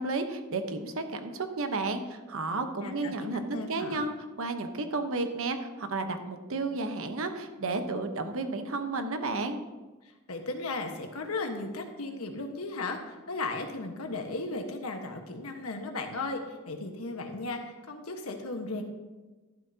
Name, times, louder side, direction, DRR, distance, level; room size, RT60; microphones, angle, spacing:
voice 1, 0.0-9.6, right 3 dB, 70° right, 7 dB, 1.0 m, -32 dB
voice 2, 2.8-4.1 10.3-16.4 16.7-18.8, left 3 dB, 80° left, 3 dB, 1.4 m, -36 dB
12.5 x 11.5 x 2.8 m, 1.2 s
head